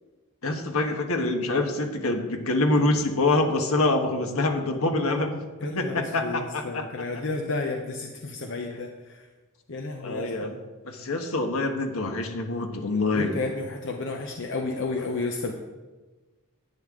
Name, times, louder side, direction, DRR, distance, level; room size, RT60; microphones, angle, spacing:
voice 1, 0.4-5.4 5.7-7.2 10.0-10.6 10.8-13.3, left 2 dB, 80° left, 4 dB, 1.4 m, -26 dB
voice 2, 5.6-9.2 9.7-10.5 13.1-15.5, left 3 dB, 60° left, 2 dB, 0.8 m, -32 dB
10.5 x 9.4 x 3.7 m, 1.2 s
head